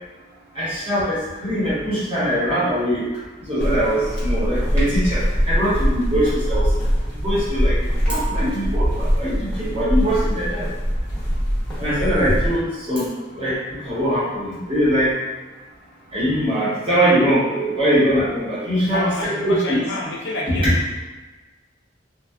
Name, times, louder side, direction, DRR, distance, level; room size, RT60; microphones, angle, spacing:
voice 1, 0.5-3.0 3.5-6.7 7.2-7.8 8.0-10.7 11.8-13.1 13.3-15.1 16.1-19.8 20.6-20.7, equal, 30° right, -10 dB, 1.1 m, -22 dB
sound 1, 3.6-12.6, equal, 5° left, 0.8 m, -22 dB
voice 2, 18.7-20.7, left 2 dB, 65° left, -2 dB, 0.5 m, -29 dB
2.5 x 2.3 x 2.3 m, 1.2 s
head